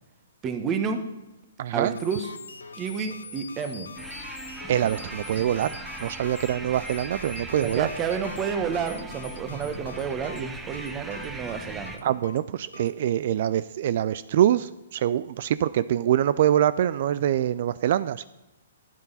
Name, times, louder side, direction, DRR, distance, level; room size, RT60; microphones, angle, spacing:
voice 1, 0.4-1.0 1.7-2.3 2.8-3.9 7.6-12.0, right 6 dB, 25° right, 7 dB, 1.2 m, -30 dB
voice 2, 1.6-2.0 4.7-5.7 6.0-7.9 12.0-18.2, right 11 dB, 50° right, 16 dB, 0.3 m, -24 dB
sound 1, 1.9-13.0, left 4 dB, 80° left, 0.7 m, -44 dB
sound 2, 4.0-12.0, right 3 dB, 10° right, 0.9 m, -39 dB
12.0 x 8.9 x 4.1 m, 1.0 s
figure-of-eight pair, 125°, 0 cm